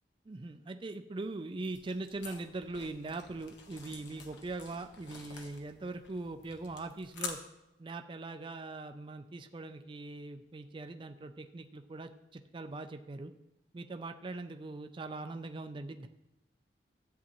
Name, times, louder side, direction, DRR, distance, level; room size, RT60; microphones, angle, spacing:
voice 1, 0.3-7.4 7.8-13.3 13.7-16.1, right 2 dB, 30° right, 7 dB, 0.4 m, -41 dB
sound 1, 1.6-7.3, left 5 dB, 70° left, 1.1 m, -48 dB
13.5 x 8.3 x 3.0 m, 0.91 s
head